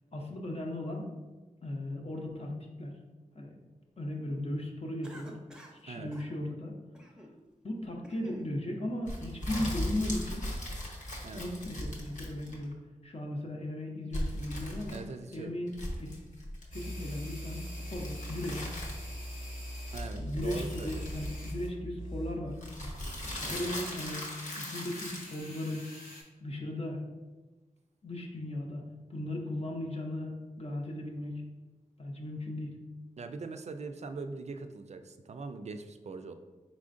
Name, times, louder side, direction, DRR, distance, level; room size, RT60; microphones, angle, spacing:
voice 1, 0.1-1.1 1.6-3.0 3.3-3.5 4.0-5.4 5.7-6.8 7.6-10.5 11.3-12.8 13.0-15.1 15.3-15.7 16.0-16.2 16.7-17.6 17.9-18.7 20.1-22.6 23.3-24.3 24.6-25.9 26.4-27.0 28.0-28.8 29.1-31.4 32.0-32.8, left 1 dB, 45° left, 0 dB, 0.7 m, -37 dB
Cough, 5.0-5.8 6.1-6.3 6.9-7.4 7.8-8.5, equal, 5° right, 0.6 m, -50 dB
sound 1, 9.1-12.7 14.1-15.3 15.7-16.8 17.9-19.2 19.9-21.7 22.6-25.3, left 1 dB, 65° left, 0.9 m, -38 dB
voice 2, 14.9-15.6 19.9-21.1 33.2-36.3, right 4 dB, 55° right, 8 dB, 0.4 m, -42 dB
sound 2, 16.7-21.7 22.0-22.3 23.0-26.2, equal, 90° left, 1.3 m, -42 dB
4.2 x 3.7 x 2.5 m, 1.2 s
cardioid pair, 55°, 14 cm